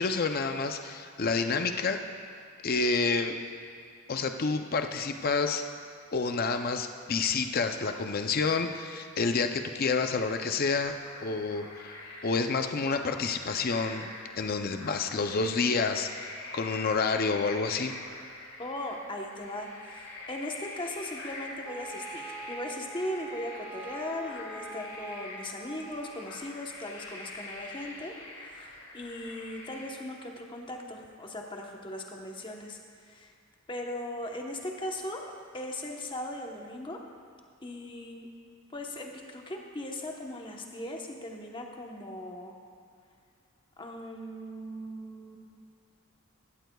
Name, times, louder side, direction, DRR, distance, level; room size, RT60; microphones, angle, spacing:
voice 1, 0.0-2.0 2.6-3.4 4.1-5.6 6.1-10.9 11.2-12.0 12.2-17.9, left 4 dB, 45° left, 6 dB, 0.5 m, -29 dB
sound 1, 10.7-29.9, left 2 dB, 85° left, 2.7 m, -45 dB
voice 2, 18.6-33.3 33.7-35.3 35.5-37.0 37.6-38.3 38.7-42.6 43.8-45.4, left 1 dB, 20° left, 1 dB, 1.0 m, -38 dB
Wind instrument woodwind instrument, 21.6-26.2, right 3 dB, 5° right, 0.6 m, -44 dB
15.5 x 14.0 x 2.3 m, 2.2 s
head